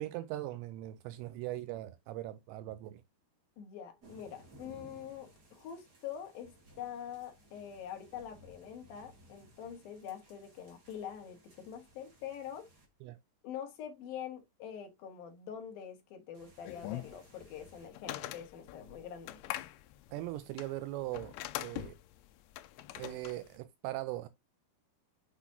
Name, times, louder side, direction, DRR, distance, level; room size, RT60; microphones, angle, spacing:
voice 1, 0.0-3.0 13.0-13.2 20.1-21.3 21.6-22.0 23.0-24.3, right 15 dB, 85° right, 2.8 m, -40 dB
voice 2, 3.6-12.7 13.4-19.4, left 9 dB, 65° left, 2.9 m, -45 dB
sound 1, 4.0-12.9 16.3-17.9, right 1 dB, 30° right, 2.1 m, -60 dB
sound 2, 16.7-23.6, left 15 dB, 85° left, 2.9 m, -43 dB
8.1 x 5.9 x 2.8 m
omnidirectional pair, 5.1 m